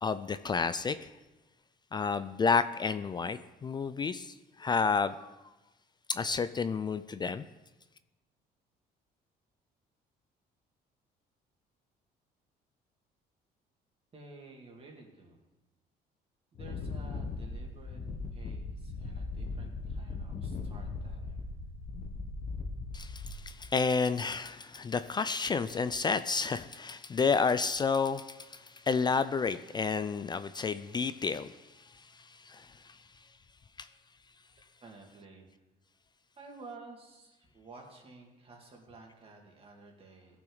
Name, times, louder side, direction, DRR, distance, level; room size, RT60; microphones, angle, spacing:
voice 1, 0.0-1.1 1.9-5.3 6.1-7.5 22.9-31.6 32.2-33.0 33.8-33.9, left 5 dB, 25° left, 13 dB, 0.3 m, -31 dB
voice 2, 14.1-15.4 16.5-18.0 18.3-21.4 34.8-35.5 36.4-40.4, right 3 dB, 35° right, 0 dB, 2.3 m, -52 dB
Wind, 16.5-23.7, left 3 dB, 50° left, 1.1 m, -39 dB
15.5 x 6.0 x 3.9 m, 1.1 s
cardioid pair, 110°, 17 cm